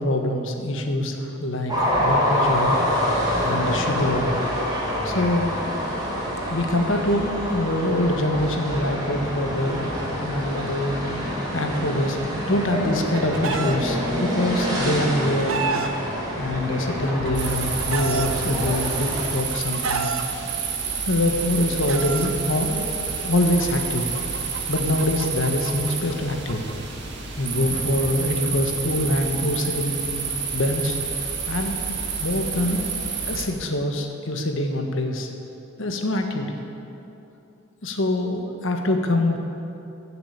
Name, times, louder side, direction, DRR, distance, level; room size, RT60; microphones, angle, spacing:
voice 1, 0.0-2.8 3.4-4.3 5.0-5.5 6.5-11.0 11.5-15.8 16.4-20.1 21.1-22.9 23.2-24.1 24.7-26.6 27.4-30.0 30.5-31.0 31.5-32.9 33.3-35.3 35.8-36.6 37.8-39.4, left 1 dB, 70° left, 4 dB, 1.5 m, -24 dB
sound 1, 1.7-19.3, equal, 20° right, 3.0 m, -26 dB
Chicken rooster, 12.6-13.8 14.8-15.9 16.9-18.3 19.2-20.2 21.2-22.3 23.4-26.7, right 5 dB, 75° right, 0.9 m, -30 dB
sound 2, 17.3-33.5, right 5 dB, 55° right, 1.9 m, -29 dB
15.0 x 7.8 x 8.2 m, 2.9 s
head